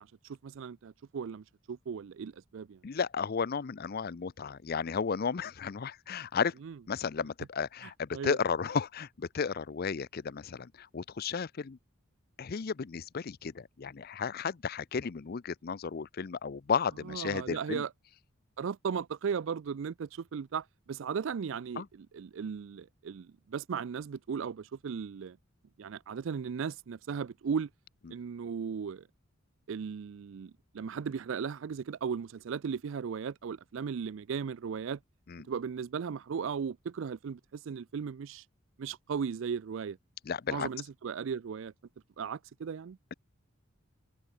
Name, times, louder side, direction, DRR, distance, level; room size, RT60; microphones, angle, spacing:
voice 1, 0.0-2.8 6.6-6.7 8.1-8.4 17.1-17.9 18.6-25.4 25.8-27.7 28.1-29.0 29.7-35.0 35.5-38.4 38.8-40.0 40.5-41.7 42.2-43.0, right 6 dB, 65° right, 0.4 m, -36 dB
voice 2, 2.8-6.5 6.9-11.8 12.4-17.8 21.8-21.9 35.3-35.5 40.3-40.7, left 6 dB, 45° left, 0.5 m, -33 dB
head